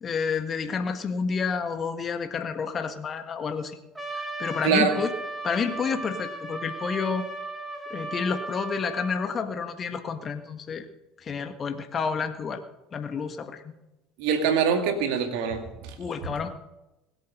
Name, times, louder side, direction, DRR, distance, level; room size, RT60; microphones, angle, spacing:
voice 1, 0.0-3.8 4.1-5.1 5.4-7.2 7.9-10.8 11.2-12.6 12.9-13.7 16.0-16.5, left 5 dB, 35° left, 8 dB, 1.6 m, -30 dB
Trumpet, 4.0-9.3, right 2 dB, 10° right, 3.4 m, -36 dB
voice 2, 4.6-5.0 14.2-15.9, right 6 dB, 60° right, 6 dB, 2.2 m, -24 dB
21.0 x 8.2 x 6.5 m, 1.0 s
figure-of-eight pair, 65°, 0 cm